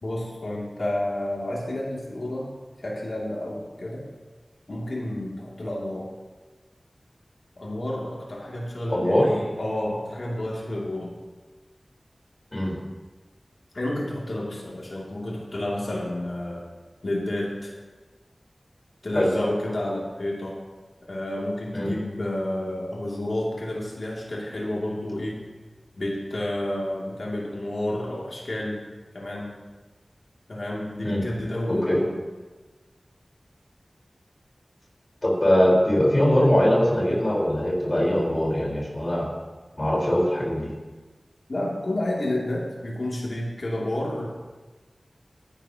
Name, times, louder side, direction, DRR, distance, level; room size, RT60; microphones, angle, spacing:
voice 1, 0.0-2.5 2.8-4.0 4.7-6.1 7.6-11.1 13.7-16.6 17.0-17.7 19.0-20.6 21.0-25.4 26.0-28.8 29.1-29.5 30.5-32.2 41.5-44.3, left 1 dB, 70° left, -4 dB, 2.7 m, -30 dB
voice 2, 8.9-9.3 12.5-12.8 19.1-19.3 21.7-21.9 31.0-31.2 31.7-32.0 35.2-39.2 39.8-40.7, equal, 45° left, -4 dB, 4.4 m, -21 dB
18.5 x 11.0 x 3.0 m, 1.3 s
wide cardioid pair, 40°, 0 cm